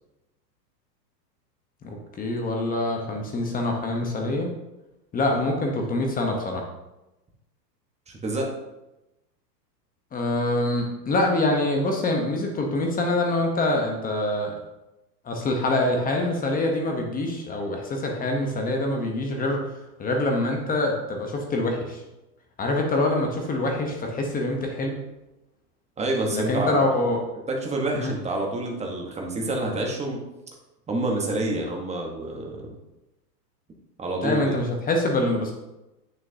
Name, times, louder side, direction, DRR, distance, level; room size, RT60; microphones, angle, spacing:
voice 1, 1.8-4.5 5.1-6.6 10.1-14.5 15.2-19.6 20.0-22.0 22.6-25.0 26.3-27.2 28.0-28.1 34.2-35.5, left 2 dB, 15° left, 2 dB, 1.0 m, -25 dB
voice 2, 26.0-26.8 27.5-30.2 30.9-32.7 34.0-34.6, right 2 dB, 15° right, 0 dB, 1.3 m, -28 dB
8.8 x 6.6 x 2.8 m, 0.97 s
hypercardioid pair, 125°, 50 cm